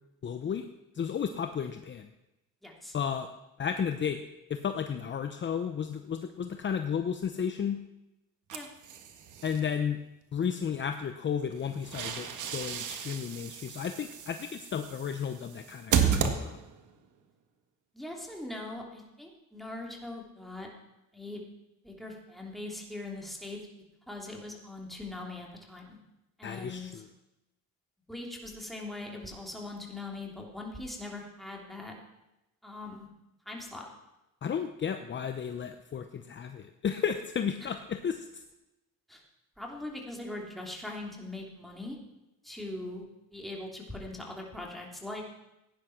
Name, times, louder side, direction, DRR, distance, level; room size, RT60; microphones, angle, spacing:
voice 1, 0.2-0.7 0.9-2.1 2.9-3.3 3.6-4.2 4.5-7.8 9.4-10.0 10.3-12.3 12.5-16.6 26.4-27.0 34.4-38.4, left 7 dB, 35° left, 7 dB, 0.8 m, -33 dB
voice 2, 2.6-2.9 8.5-8.7 17.9-20.7 21.1-21.4 21.8-23.6 24.1-26.0 26.4-27.0 28.1-31.9 32.6-33.1 33.4-33.9 37.6-37.7 39.1-39.2 39.6-42.0 42.4-45.2, left 2 dB, ahead, -1 dB, 3.2 m, -41 dB
sound 1, 8.5-9.6 11.5-16.9, right 7 dB, 65° right, 1.8 m, -33 dB
16.5 x 10.0 x 6.0 m, 0.94 s
cardioid pair, 115°, 33 cm